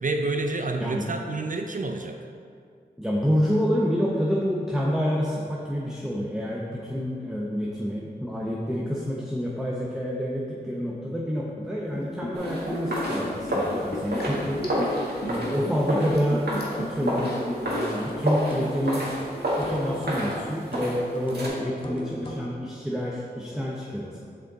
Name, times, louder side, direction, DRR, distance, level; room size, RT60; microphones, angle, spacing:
voice 1, 0.0-2.3, right 2 dB, 50° right, 4 dB, 0.4 m, -28 dB
voice 2, 3.0-16.4 16.8-19.0 19.6-24.2, equal, 5° right, -4 dB, 0.7 m, -28 dB
Liquid, 11.9-18.1 18.3-18.4, left 1 dB, 70° left, 1.2 m, -33 dB
sound 1, 12.3-21.5, equal, 75° right, 1.7 m, -30 dB
sound 2, 16.3-22.5, equal, 30° left, 1.0 m, -40 dB
7.1 x 5.1 x 3.9 m, 2.2 s
wide cardioid pair, 65°, 17 cm